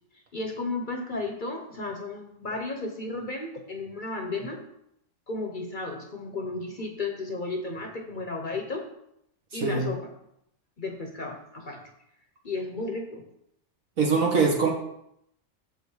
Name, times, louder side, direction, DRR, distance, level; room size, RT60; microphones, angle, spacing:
voice 1, 0.3-4.6 5.3-8.9 9.5-10.1 10.8-11.8 12.4-13.2, left 3 dB, 40° left, 3 dB, 0.9 m, -33 dB
voice 2, 9.5-9.9 14.0-14.7, right 4 dB, 75° right, 0 dB, 2.1 m, -23 dB
7.1 x 5.8 x 4.8 m, 0.78 s
omnidirectional pair, 1.4 m